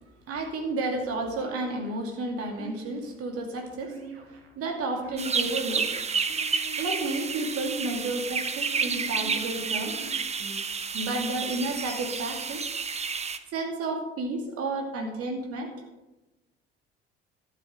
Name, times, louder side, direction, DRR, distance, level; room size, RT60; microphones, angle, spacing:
voice 1, 0.3-4.0 4.3-5.9 6.8-10.1 10.9-12.6 13.5-15.7, right 2 dB, 50° right, 3 dB, 2.5 m, -31 dB
sound 1, 1.4-2.0 2.6-3.1 3.8-4.5 5.0-5.6 6.3-7.0 7.5-8.1 8.7-9.4 10.0-10.6, right 6 dB, 75° right, 1.8 m, -44 dB
sound 2, 5.2-13.4, right 5 dB, 20° right, 0.9 m, -30 dB
12.0 x 8.6 x 5.0 m, 1.0 s
figure-of-eight pair, 55°, 30 cm